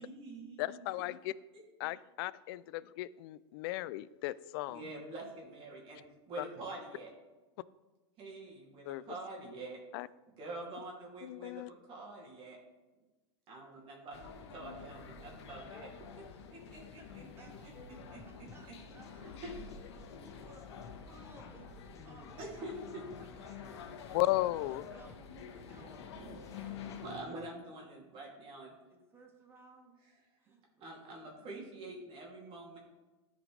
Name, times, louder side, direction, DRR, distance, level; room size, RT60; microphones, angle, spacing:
voice 1, 0.0-1.0 4.7-7.1 8.2-9.8 10.4-12.6 13.5-15.9 16.7-17.5 18.1-18.2 19.2-19.5 22.4-23.0 25.8-26.4 27.0-28.7 30.8-32.8, right 2 dB, 40° right, -3 dB, 2.5 m, -46 dB
voice 2, 0.6-1.3 1.8-4.8 6.4-6.5 8.9-9.0 9.9-10.1 11.2-11.7 24.1-24.8, left 17 dB, 55° left, 19 dB, 0.4 m, -35 dB
sound 1, 14.1-27.2, left 6 dB, 75° left, 1.1 m, -49 dB
voice 3, 17.0-19.5 20.3-20.6 21.1-23.8 24.6-25.9 26.5-26.8 28.9-31.6, right 2 dB, 15° right, 1 dB, 1.6 m, -60 dB
voice 4, 18.2-27.5, left 3 dB, 20° left, 3 dB, 1.1 m, -59 dB
14.0 x 5.1 x 3.2 m, 1.2 s
supercardioid pair, 130°, 14 cm